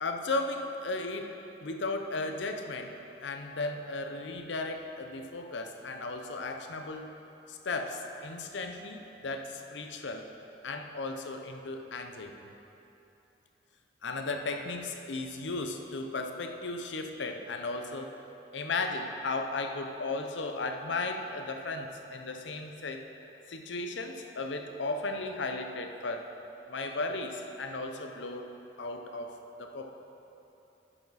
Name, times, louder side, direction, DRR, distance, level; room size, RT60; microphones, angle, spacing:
voice 1, 0.0-7.1 7.5-10.3 10.6-12.5 14.0-18.1 18.5-23.1 23.5-26.3 26.7-28.5 28.8-29.9, left 3 dB, 85° left, 5 dB, 0.7 m, -35 dB
11.5 x 7.2 x 4.1 m, 2.9 s
head